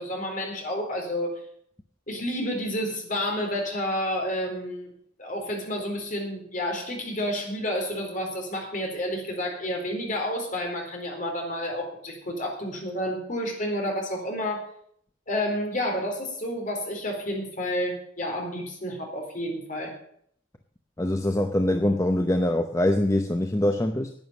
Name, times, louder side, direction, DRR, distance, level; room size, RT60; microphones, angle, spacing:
voice 1, 0.0-1.4 2.1-4.9 5.2-14.6 15.3-19.9, equal, 40° left, 1 dB, 4.2 m, -30 dB
voice 2, 21.0-24.1, left 1 dB, 15° left, 6 dB, 0.6 m, -24 dB
11.0 x 9.3 x 8.2 m, 0.65 s
head